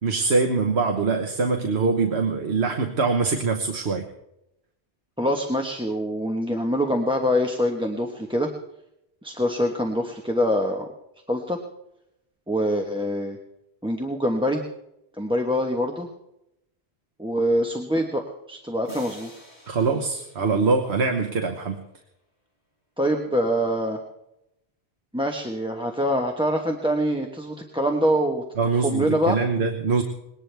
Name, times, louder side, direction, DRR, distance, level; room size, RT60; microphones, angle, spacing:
voice 1, 0.0-4.0 19.7-21.8 28.6-30.0, right 4 dB, 80° right, 4 dB, 1.4 m, -23 dB
voice 2, 5.2-8.5 9.2-10.9 11.3-11.6 12.5-13.4 13.8-14.6 15.2-16.1 17.2-18.2 18.5-19.3 23.0-24.0 25.1-28.4 28.8-29.4, equal, 5° right, 2 dB, 1.2 m, -24 dB
sound 1, 18.8-21.7, equal, 80° left, 7.2 m, -48 dB
21.0 x 18.0 x 3.4 m, 0.84 s
omnidirectional pair, 1.1 m